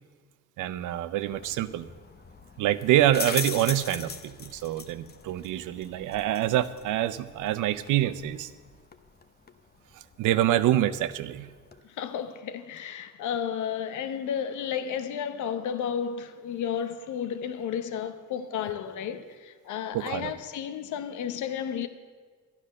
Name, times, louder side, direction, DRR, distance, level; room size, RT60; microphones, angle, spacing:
voice 1, 0.6-1.9 2.6-8.5 10.2-11.5 19.9-20.3, right 13 dB, 85° right, 0.7 m, -26 dB
sound 1, 1.2-11.8, left 5 dB, 35° left, 0.9 m, -41 dB
voice 2, 11.8-21.9, left 8 dB, 75° left, 0.9 m, -32 dB
12.0 x 10.0 x 6.4 m
cardioid pair, 90°, 30 cm